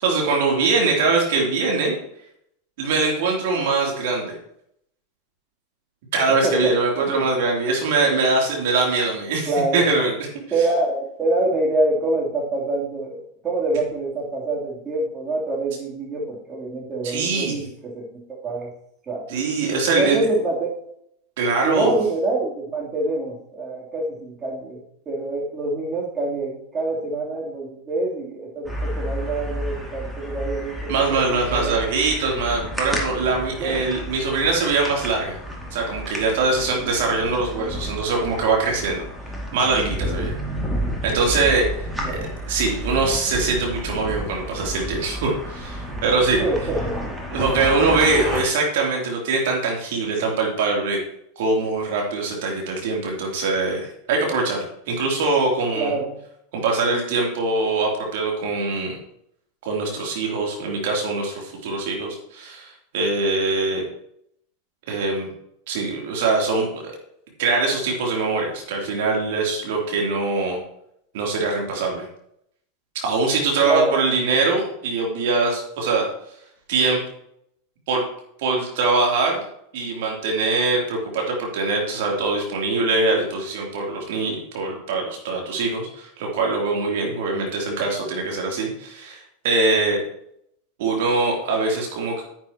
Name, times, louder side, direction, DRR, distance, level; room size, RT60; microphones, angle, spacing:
voice 1, 0.0-1.9 2.8-4.3 6.1-10.1 17.0-17.6 19.3-20.2 21.4-22.0 30.9-35.4 35.7-39.0 39.5-40.4 41.0-41.7 42.5-46.4 47.3-51.0 51.4-56.0 56.5-59.0 59.6-63.8 64.9-65.3 65.7-66.9 67.4-70.6 71.1-72.1 72.9-76.1 76.7-77.0 77.9-78.0 78.4-79.4 79.7-90.0 90.8-92.2, right 3 dB, 60° right, -1 dB, 3.1 m, -22 dB
voice 2, 6.4-7.2 9.5-9.8 10.5-18.7 19.1-20.7 21.6-31.0 31.3-31.8 33.6-33.9 42.0-42.3 46.4-47.2 55.7-56.2 73.6-74.0, right 2 dB, 25° right, -3 dB, 3.2 m, -26 dB
sound 1, 28.7-48.4, equal, ahead, 2.4 m, -31 dB
10.0 x 9.5 x 3.0 m, 0.74 s
figure-of-eight pair, 85°, 0 cm